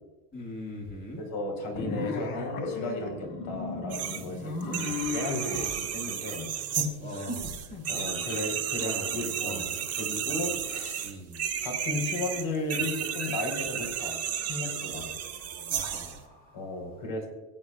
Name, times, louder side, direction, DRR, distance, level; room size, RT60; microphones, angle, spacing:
voice 1, 0.3-1.2 5.5-5.8 7.0-7.4 8.8-9.6 10.3-10.4 11.0-11.5 15.7-16.8, left 1 dB, 20° left, -2 dB, 2.1 m, -41 dB
voice 2, 1.2-9.7 10.0-11.2 11.6-14.2 14.4-15.1 16.5-17.3, left 2 dB, 60° left, 2 dB, 4.6 m, -35 dB
sound 1, 1.8-5.7, left 3 dB, 75° left, 2.2 m, -34 dB
sound 2, 3.9-4.3 4.6-16.2, right 9 dB, 30° right, 1.6 m, -33 dB
22.5 x 8.7 x 2.4 m, 1.2 s
supercardioid pair, 125°, 47 cm